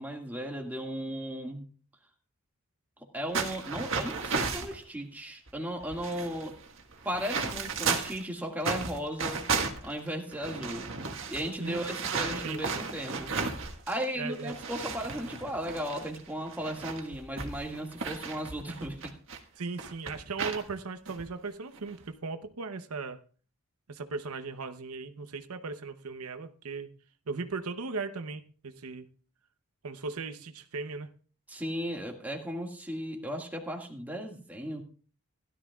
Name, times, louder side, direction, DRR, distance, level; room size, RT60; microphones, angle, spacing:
voice 1, 0.0-1.6 3.1-6.5 7.0-9.4 9.8-10.9 11.3-13.4 13.9-19.1 31.5-34.8, equal, 10° right, 1.9 m, -36 dB
sound 1, 3.3-4.8 5.5-5.6 5.8-8.2 8.6-14.0 14.3-19.4 19.8-20.6 21.1-21.2 21.8-22.0, right 5 dB, 60° right, 1.6 m, -34 dB
voice 2, 11.6-11.9 12.4-12.6 14.2-14.6 19.6-23.2 23.9-26.9 27.3-29.1 29.8-31.1, right 4 dB, 80° right, 0.8 m, -37 dB
16.5 x 12.5 x 2.4 m
head